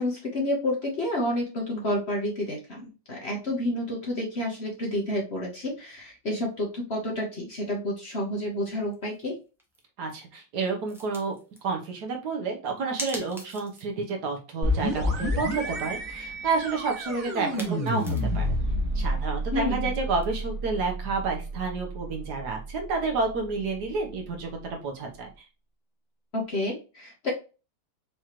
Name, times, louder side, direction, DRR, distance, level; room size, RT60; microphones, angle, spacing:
voice 1, 0.0-9.3 19.5-19.9 26.3-27.3, left 1 dB, 45° left, -1 dB, 1.1 m, -30 dB
sound 1, 8.9-9.2 9.6-9.8 10.9-11.6 13.0-14.0 14.3-14.4 14.8-15.4 17.2-18.5 20.2-20.3, equal, ahead, 0.6 m, -41 dB
voice 2, 10.0-11.4 11.6-18.5 18.9-25.3, right 4 dB, 65° right, 2 dB, 1.4 m, -30 dB
sound 2, 14.6-24.2, equal, 25° right, 1.0 m, -30 dB
4.9 x 3.0 x 3.0 m, 0.32 s
omnidirectional pair, 2.0 m